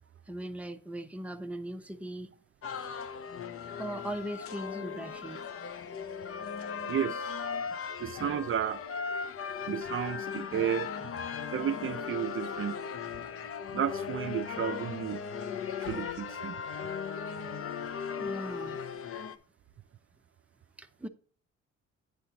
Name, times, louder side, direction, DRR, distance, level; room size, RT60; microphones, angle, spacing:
voice 1, 0.3-2.3 3.8-5.4 7.7-7.8 18.2-18.8 20.8-21.1, right 1 dB, 5° right, 0.8 m, -39 dB
sound 1, 2.6-19.4, left 6 dB, 50° left, 0.8 m, -37 dB
voice 2, 6.9-7.4 8.0-8.8 9.7-11.2 11.5-12.8 13.7-15.2 15.8-16.6, right 9 dB, 45° right, 0.5 m, -33 dB
9.4 x 4.3 x 3.9 m
cardioid pair, 90°, 30 cm